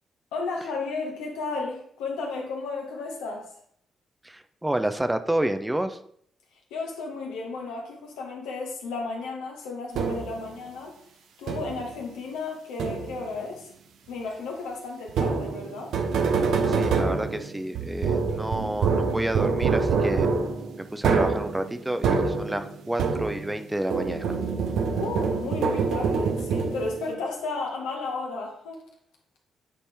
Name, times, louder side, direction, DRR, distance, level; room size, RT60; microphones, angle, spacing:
voice 1, 0.3-3.5 6.7-10.9 11.4-13.7 14.1-15.9 24.8-28.8, left 3 dB, 75° left, 0 dB, 1.3 m, -33 dB
voice 2, 4.2-6.0 16.7-20.3 20.8-24.4, right 1 dB, 15° right, 9 dB, 0.6 m, -29 dB
sound 1, 9.9-10.5 11.5-11.9 12.8-13.3 15.1-23.6 23.9-27.1, right 5 dB, 70° right, 0.7 m, -26 dB
8.3 x 4.2 x 3.5 m, 0.65 s
hypercardioid pair, 40°, 0 cm